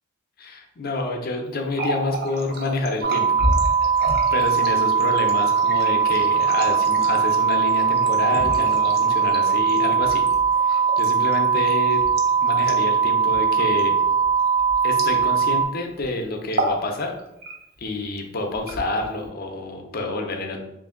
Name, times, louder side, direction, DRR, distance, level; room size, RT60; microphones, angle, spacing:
voice 1, 0.4-3.4 4.3-10.2 10.6-12.0 12.4-14.0 14.8-17.1 17.8-20.6, left 2 dB, 50° left, 3 dB, 0.6 m, -28 dB
Water tap faucet, 1.6-15.6 15.9-16.1 16.4-16.9 17.2-17.8 18.5-19.3, right 1 dB, 55° right, 0.6 m, -32 dB
sound 1, 3.0-15.7, right 6 dB, 90° right, 0.9 m, -20 dB
3.2 x 2.5 x 3.7 m, 0.86 s
head